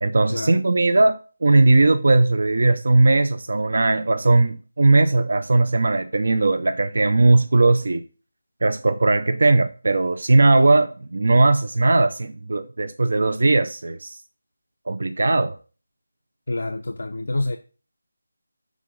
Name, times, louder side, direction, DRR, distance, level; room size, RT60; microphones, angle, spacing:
voice 1, 0.0-8.0 8.6-14.2 14.9-15.6, right 2 dB, 60° right, 0.5 m, -18 dB
voice 2, 16.5-17.6, left 2 dB, 75° left, 0.6 m, -27 dB
6.2 x 3.8 x 5.2 m
figure-of-eight pair, 170°, 0 cm